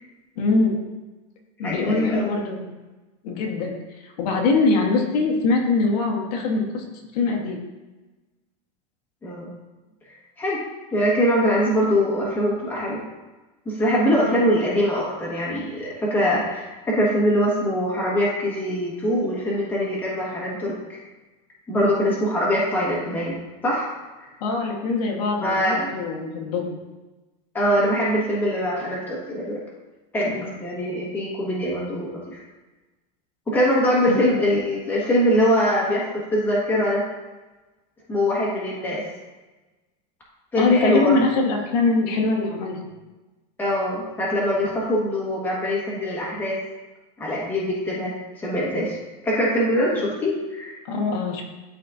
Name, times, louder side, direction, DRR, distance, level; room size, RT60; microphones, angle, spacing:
voice 1, 0.4-0.8 1.6-2.7 3.2-3.7 4.0-6.8 7.1-7.6 14.1-14.4 24.4-26.8 30.2-30.5 34.1-34.2 40.6-42.9 49.9-50.0 50.8-51.4, left 3 dB, 75° left, 1 dB, 1.5 m, -23 dB
voice 2, 1.6-2.3 9.2-9.5 10.4-10.6 10.9-13.0 13.6-21.0 21.7-23.3 23.6-23.9 24.2-24.3 25.4-25.9 27.5-29.6 30.1-32.4 33.5-37.0 38.1-39.0 40.5-41.1 43.6-46.6 47.2-49.0 49.2-50.8, equal, 10° left, -5 dB, 1.5 m, -23 dB
12.5 x 4.2 x 2.7 m, 1.1 s
supercardioid pair, 180°, 20 cm